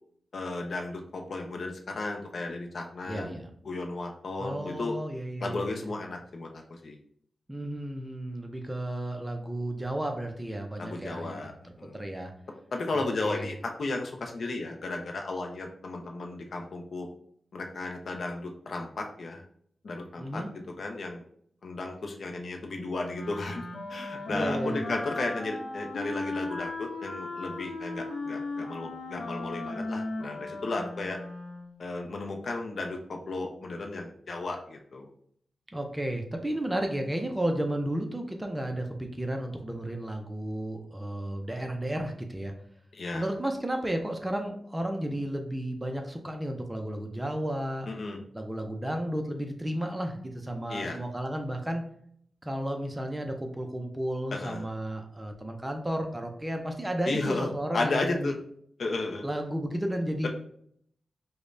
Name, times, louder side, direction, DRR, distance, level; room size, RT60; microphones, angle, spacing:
voice 1, 0.3-3.4 3.6-5.0 5.4-7.0 10.8-11.5 11.8-12.1 12.7-17.1 17.5-19.4 19.8-21.2 21.6-23.6 23.9-31.2 31.8-35.1 42.9-43.3 47.9-48.2 50.7-51.0 54.3-54.7 57.1-57.5 57.7-58.3 58.8-59.2, left 2 dB, 55° left, 2 dB, 0.5 m, -34 dB
voice 2, 3.1-3.5 4.4-5.9 7.5-12.3 12.9-13.5 20.2-20.5 24.3-24.8 35.7-42.5 43.1-47.9 48.3-51.8 52.4-58.3 59.2-60.3, right 1 dB, 10° right, 4 dB, 0.4 m, -33 dB
Wind instrument woodwind instrument, 23.1-31.8, left 2 dB, 80° left, 0.7 m, -36 dB
5.0 x 2.1 x 2.5 m, 0.65 s
wide cardioid pair, 155°, 0 cm